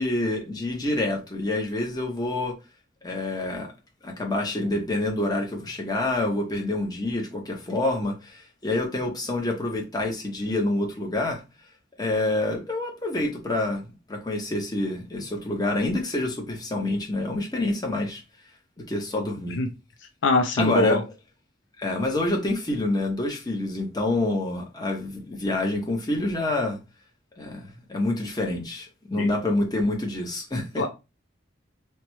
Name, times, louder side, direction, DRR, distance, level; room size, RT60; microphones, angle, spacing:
voice 1, 0.0-2.5 3.0-3.7 4.0-11.4 12.0-18.2 18.8-19.6 20.6-21.0 21.8-26.8 27.4-30.8, left 2 dB, 20° left, 0.7 m, -27 dB
voice 2, 20.2-21.0 29.2-29.3 30.8-30.9, left 2 dB, 70° left, 0.4 m, -22 dB
3.3 x 2.1 x 2.9 m
head